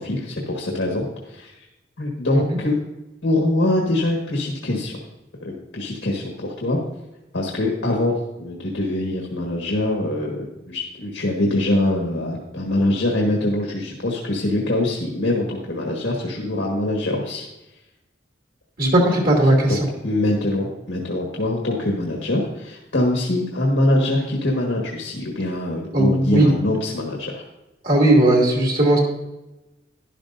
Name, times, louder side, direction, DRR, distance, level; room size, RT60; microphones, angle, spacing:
voice 1, 0.0-1.5 2.0-2.8 3.2-5.0 5.4-6.8 7.3-17.5 19.7-19.8 20.0-27.4, left 1 dB, 85° left, -1 dB, 1.6 m, -23 dB
voice 2, 18.8-19.8 25.9-26.5 27.8-29.0, right 1 dB, 50° right, -1 dB, 2.6 m, -17 dB
12.0 x 11.5 x 2.6 m, 1.0 s
head